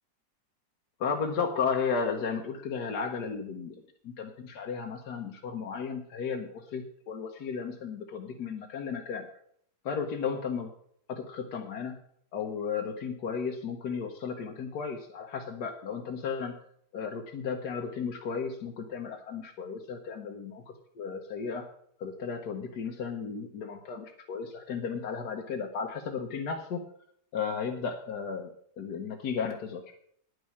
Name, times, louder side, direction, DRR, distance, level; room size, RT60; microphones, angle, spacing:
voice 1, 1.0-3.8 4.0-9.3 9.8-10.7 11.1-12.0 12.3-16.5 16.9-21.6 22.0-26.8 27.3-28.5 28.8-29.9, left 6 dB, 65° left, 2 dB, 1.5 m, -34 dB
10.5 x 6.4 x 8.5 m, 0.67 s
omnidirectional pair, 2.0 m